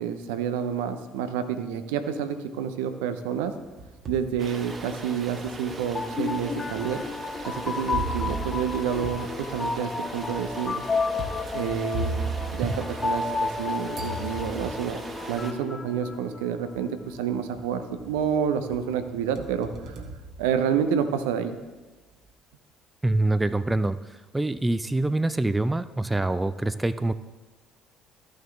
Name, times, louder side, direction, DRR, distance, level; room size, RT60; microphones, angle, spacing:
voice 1, 0.0-3.6 4.1-7.0 7.5-10.8 11.5-15.0 15.3-20.0 20.4-21.6, right 8 dB, 70° right, 9 dB, 0.6 m, -29 dB
sound 1, 3.4-4.3 4.9-5.0 5.9-6.0 7.9-13.6 13.9-15.0 16.1-16.2 16.7-17.2 17.5-18.3 18.7-21.1, right 3 dB, 50° right, 1.3 m, -36 dB
sound 2, 4.4-15.5, right 3 dB, 35° right, 1.5 m, -40 dB
sound 3, 5.7-16.8, left 4 dB, 25° left, 0.8 m, -32 dB
voice 2, 23.0-24.0 24.3-27.1, right 2 dB, 15° right, 13 dB, 0.4 m, -25 dB
14.0 x 6.4 x 3.4 m, 1.2 s
figure-of-eight pair, 50°, 0 cm